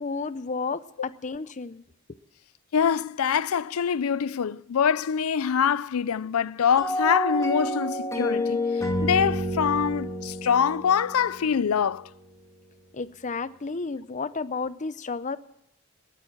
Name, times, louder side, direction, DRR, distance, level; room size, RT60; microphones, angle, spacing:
voice 1, 0.0-1.8 12.9-15.4, left 4 dB, 35° left, 0.6 m, -32 dB
voice 2, 2.7-8.6 9.0-12.1, left 7 dB, 85° left, 0.5 m, -24 dB
sound 1, 6.8-11.9, left 1 dB, 15° left, 2.0 m, -29 dB
20.5 x 9.3 x 7.2 m
head